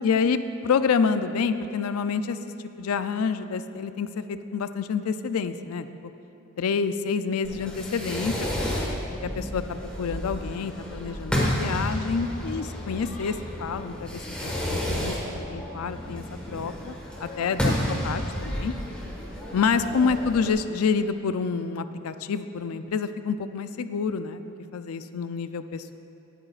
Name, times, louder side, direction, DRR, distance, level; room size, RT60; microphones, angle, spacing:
voice 1, 0.0-2.4 2.8-5.9 6.6-18.7 19.5-24.5 24.7-26.0, left 5 dB, 85° left, 11 dB, 0.4 m, -28 dB
Fireworks, 7.4-20.5, equal, 5° left, 1.5 m, -31 dB
17.5 x 8.9 x 2.4 m, 2.9 s
head